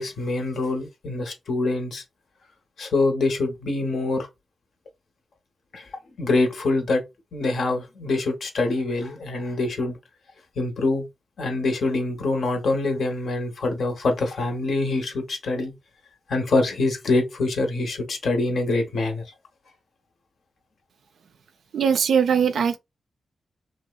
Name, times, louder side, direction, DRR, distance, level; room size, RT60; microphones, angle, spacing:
voice 1, 0.0-2.0 2.8-4.3 5.7-5.9 6.2-7.0 7.3-10.0 10.6-11.1 11.4-15.7 16.3-19.2, left 2 dB, 75° left, 0.7 m, -25 dB
voice 2, 21.7-22.8, right 7 dB, 80° right, 0.3 m, -20 dB
2.7 x 2.0 x 2.2 m
cardioid pair, 55°, 0 cm